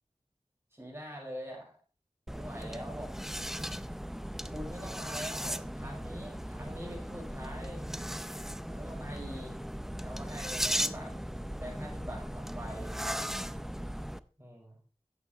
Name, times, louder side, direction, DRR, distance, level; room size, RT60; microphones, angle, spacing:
voice 1, 0.7-1.7 2.3-3.1 4.5-7.8 8.7-9.6 10.0-11.1 11.6-12.9 14.4-14.8, equal, 20° right, -2 dB, 5.5 m, -44 dB
sound 1, 2.3-14.2, equal, 5° right, 0.5 m, -37 dB
10.5 x 8.2 x 4.4 m, 0.39 s
wide cardioid pair, 60°, 12 cm